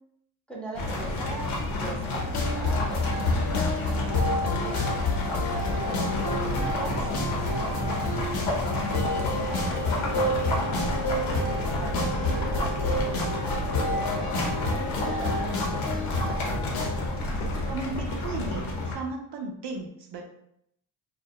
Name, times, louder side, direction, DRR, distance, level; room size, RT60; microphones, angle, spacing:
voice 1, 0.5-4.8 5.1-7.9 8.4-11.2 11.5-13.1 13.9-16.4, right 2 dB, ahead, -3 dB, 0.5 m, -41 dB
sound 1, 0.7-18.9, left 2 dB, 85° left, 0.7 m, -30 dB
sound 2, 2.3-16.9, left 1 dB, 50° left, 0.7 m, -29 dB
voice 2, 17.7-20.2, right 3 dB, 60° right, 2 dB, 0.5 m, -35 dB
2.2 x 2.2 x 2.7 m, 0.73 s
cardioid pair, 80°, 47 cm